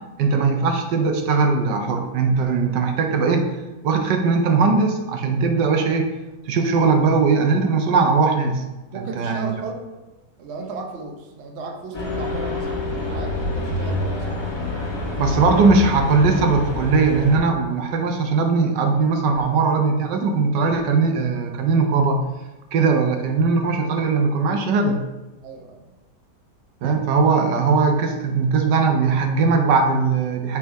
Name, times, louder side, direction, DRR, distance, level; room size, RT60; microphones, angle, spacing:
voice 1, 0.2-3.4 3.8-6.1 6.5-8.6 8.9-9.5 15.2-22.2 22.7-25.0 26.8-30.6, right 4 dB, 85° right, 4 dB, 1.4 m, -19 dB
voice 2, 8.9-9.8 10.4-14.4 25.4-25.9, right 3 dB, 50° right, 2 dB, 0.9 m, -35 dB
sound 1, 11.9-17.4, left 2 dB, 20° left, 1.0 m, -27 dB
6.2 x 3.5 x 4.5 m, 1.1 s
omnidirectional pair, 1.8 m